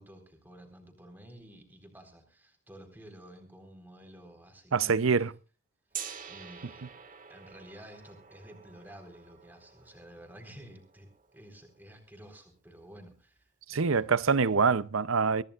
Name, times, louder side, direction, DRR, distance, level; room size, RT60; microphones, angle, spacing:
voice 1, 0.0-5.3 5.9-6.9 7.3-14.2, equal, 10° right, 4.1 m, -52 dB
voice 2, 4.7-5.3 13.7-15.4, right 5 dB, 80° right, 0.7 m, -25 dB
Gong, 5.9-11.8, right 8 dB, 40° right, 1.8 m, -47 dB
24.0 x 15.5 x 2.5 m
head